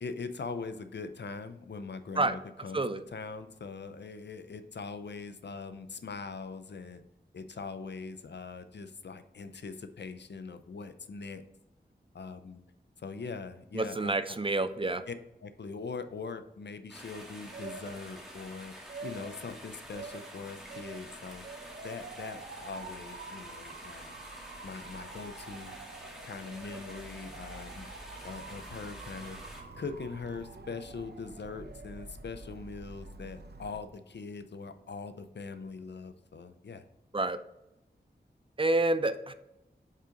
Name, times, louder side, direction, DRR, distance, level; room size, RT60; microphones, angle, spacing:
voice 1, 0.0-2.8 3.1-7.0 7.3-11.4 12.1-12.6 13.0-14.4 15.1-15.2 15.4-18.7 19.0-21.5 21.8-24.2 24.6-25.8 26.2-27.9 28.2-29.4 29.8-36.8, left 4 dB, 70° left, 10 dB, 0.5 m, -42 dB
voice 2, 13.7-15.0 37.1-37.4 38.6-39.3, right 2 dB, 30° right, 11 dB, 0.4 m, -28 dB
sound 1, 16.9-29.6, equal, 5° right, 1.8 m, -48 dB
Motor vehicle (road) / Siren, 17.0-33.8, right 3 dB, 65° right, 0.7 m, -47 dB
5.4 x 5.0 x 3.8 m, 0.90 s
cardioid pair, 40°, 18 cm